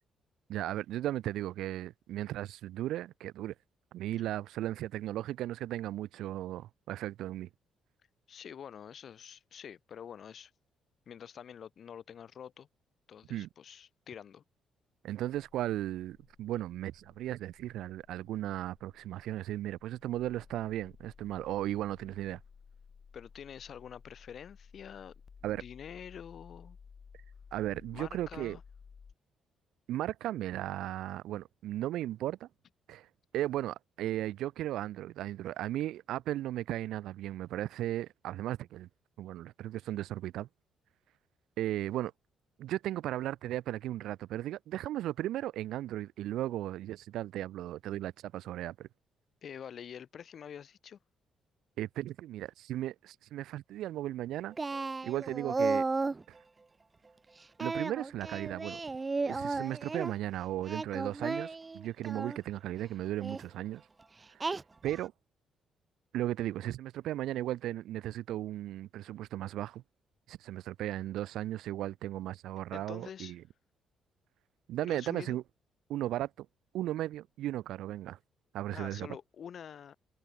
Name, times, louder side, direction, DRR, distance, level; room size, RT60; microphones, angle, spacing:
voice 1, 0.5-3.5 3.9-7.5 13.3-13.5 15.0-22.4 25.4-25.6 27.5-28.6 29.9-32.5 32.9-33.1 33.3-38.9 39.2-40.5 41.6-42.1 42.6-48.9 51.8-54.6 55.0-55.8 57.6-58.8 59.3-63.8 64.4-64.5 64.8-65.1 66.1-69.8 70.3-73.4 74.7-75.4 75.9-76.5 76.7-78.2 78.5-79.1, right 13 dB, 85° right, 1.8 m, -36 dB
voice 2, 8.3-10.5 11.1-12.7 13.1-14.4 23.1-25.1 25.5-26.8 27.9-28.6 49.4-51.0 72.7-73.4 74.8-75.4 78.7-79.9, left 8 dB, 55° left, 5.2 m, -47 dB
sound 1, 15.3-29.1, left 6 dB, 40° left, 5.6 m, -56 dB
Singing, 54.6-56.2 57.6-60.1 60.6-62.4 63.2-63.4 64.4-65.0, right 3 dB, 25° right, 2.4 m, -34 dB
cardioid pair, 90°, 0 cm